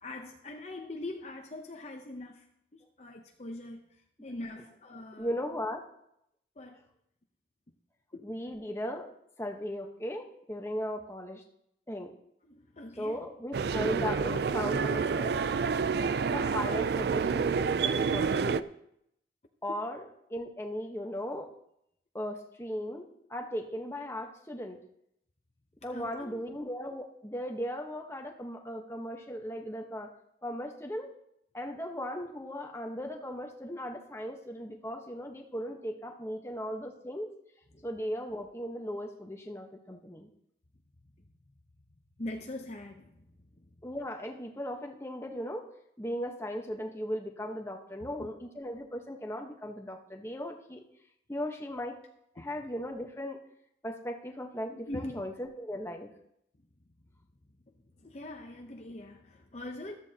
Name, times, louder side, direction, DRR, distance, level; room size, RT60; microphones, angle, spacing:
voice 1, 0.0-2.5 2.7-5.4 6.6-6.9 8.1-8.2 12.4-13.3 25.9-26.4 37.7-37.9 41.2-41.3 42.2-43.7 48.0-48.3 52.4-52.5 54.9-55.2 57.7-59.9, left 1 dB, 35° left, 0.7 m, -43 dB
voice 2, 5.2-5.8 8.2-9.1 9.4-11.4 11.9-12.1 13.0-15.3 16.3-18.7 19.6-20.0 20.3-21.5 22.1-24.8 25.8-30.1 30.4-31.1 31.5-37.3 37.8-40.3 43.8-45.7 46.0-50.8 51.3-52.0 52.3-53.4 53.8-56.1, equal, 15° left, 1.1 m, -37 dB
sound 1, 13.5-18.6, right 5 dB, 60° right, 0.4 m, -28 dB
14.0 x 13.0 x 2.8 m
head